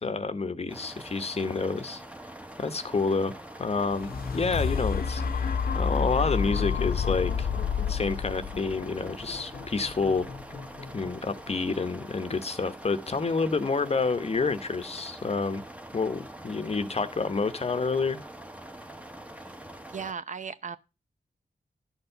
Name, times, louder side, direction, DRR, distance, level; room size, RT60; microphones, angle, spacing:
voice 1, 0.0-2.0 2.6-3.3 3.6-5.5 5.7-7.5 7.9-10.3 10.9-15.6 15.9-18.2, left 4 dB, 40° left, 0.9 m, -29 dB
sound 1, 0.7-20.1, right 1 dB, 10° right, 1.0 m, -44 dB
sound 2, 3.8-11.8 12.3-12.4, left 6 dB, 75° left, 1.0 m, -30 dB
voice 2, 19.9-20.8, right 6 dB, 50° right, 0.7 m, -37 dB
12.0 x 4.5 x 6.7 m
wide cardioid pair, 105°, 16 cm